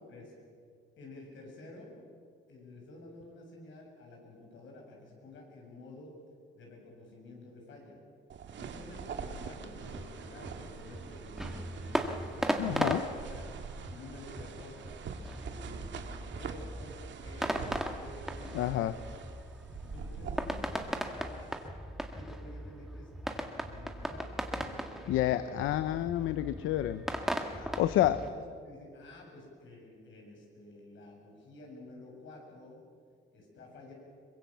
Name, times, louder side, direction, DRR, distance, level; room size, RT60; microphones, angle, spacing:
voice 1, 1.0-2.0 2.5-6.1 6.5-8.0 8.6-13.4 13.9-14.9 15.5-19.0 19.8-21.6 22.1-26.1 28.0-28.4 28.6-32.8 33.3-33.9, left 2 dB, 75° left, 0 dB, 7.6 m, -51 dB
sound 1, 8.3-21.7, right 6 dB, 65° right, 1.9 m, -44 dB
sound 2, 9.8-28.3, equal, ahead, 2.0 m, -38 dB
voice 2, 12.6-13.0 18.5-18.9 25.1-27.0 27.5-28.2, left 13 dB, 90° left, 13 dB, 0.7 m, -29 dB
23.5 x 21.5 x 7.5 m, 2.1 s
cardioid pair, 90°, 20 cm